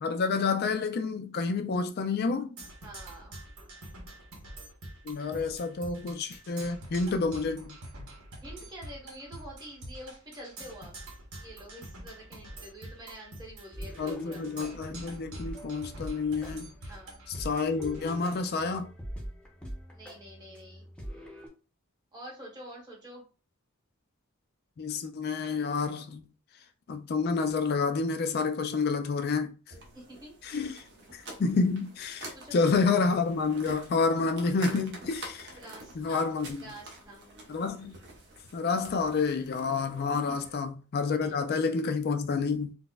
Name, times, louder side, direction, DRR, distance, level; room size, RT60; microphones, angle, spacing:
voice 1, 0.0-2.5 5.1-7.8 14.0-16.7 17.4-18.9 24.8-26.2 26.9-29.5 30.4-30.8 31.1-35.5 36.0-36.6 37.5-38.0 38.5-42.8, left 4 dB, 50° left, 0.4 m, -29 dB
Percussion, 2.6-18.5, right 1 dB, 90° right, 0.9 m, -46 dB
voice 2, 2.8-3.4 8.4-10.9 11.4-14.5 16.9-17.2 19.9-20.9 22.1-23.3 29.9-30.4 32.3-32.8 35.5-37.3 40.1-40.2, right 1 dB, 20° right, 1.1 m, -47 dB
sound 1, 13.7-21.5, equal, 5° left, 0.7 m, -44 dB
sound 2, 29.7-40.6, right 2 dB, 60° right, 0.8 m, -48 dB
4.0 x 2.1 x 2.3 m
head